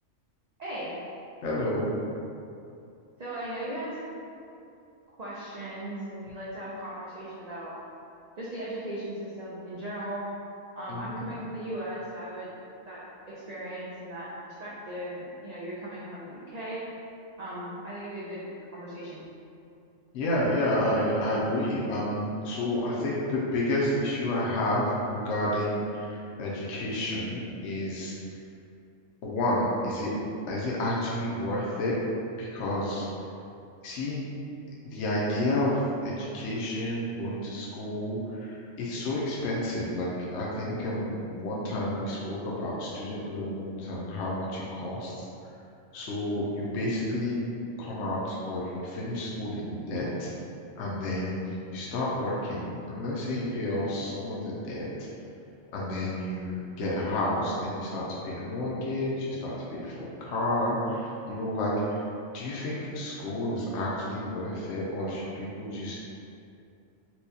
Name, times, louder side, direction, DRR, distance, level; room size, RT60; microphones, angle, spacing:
voice 1, 0.6-1.0 3.2-4.2 5.2-7.7 8.4-10.3 10.8-12.5 12.9-16.9 17.4-18.5 18.7-19.2, right 1 dB, 80° right, -8 dB, 0.3 m, -37 dB
voice 2, 1.4-1.9 10.9-11.3 20.1-28.2 29.2-32.0 32.4-33.1 33.8-34.2 34.8-45.3 45.9-47.4 47.8-50.3 50.8-55.1 55.7-62.0 62.3-66.0, left 1 dB, 70° left, -5 dB, 0.9 m, -30 dB
4.4 x 2.3 x 2.7 m, 2.6 s
omnidirectional pair, 1.4 m